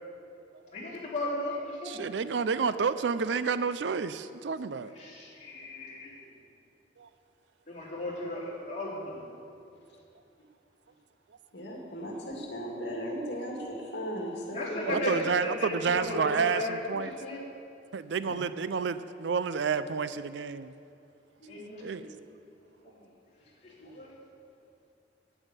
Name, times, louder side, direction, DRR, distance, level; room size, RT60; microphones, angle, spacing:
voice 1, 0.7-2.1 5.0-6.1 7.7-9.3 14.5-15.1 15.4-16.8 17.0-17.4 21.5-21.9 23.6-24.1, left 1 dB, 40° left, -6 dB, 3.3 m, -36 dB
voice 2, 1.8-5.0 7.0-7.1 14.8-17.2 17.9-20.7 21.8-22.1, right 5 dB, 75° right, 13 dB, 0.5 m, -30 dB
voice 3, 11.5-15.1 18.2-18.4 21.4-21.5 22.0-22.1 23.8-23.9, equal, 70° left, -1 dB, 2.1 m, -37 dB
9.2 x 9.1 x 8.1 m, 2.6 s
head